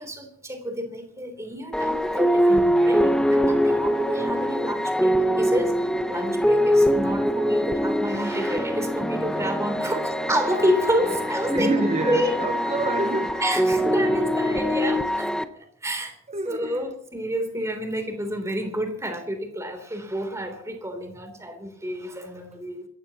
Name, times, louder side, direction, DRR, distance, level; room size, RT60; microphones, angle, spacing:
voice 1, 0.0-12.3 13.4-15.3 15.6-16.1 16.4-22.9, equal, 15° right, 3.3 m, -29 dB
sound 1, 1.7-15.4, equal, 5° left, 0.9 m, -23 dB
voice 2, 9.3-10.1 11.5-13.5 16.3-16.9, right 2 dB, 30° right, 0.6 m, -29 dB
Trumpet, 10.5-14.2, left 4 dB, 50° left, 1.4 m, -45 dB
27.5 x 14.5 x 3.0 m
head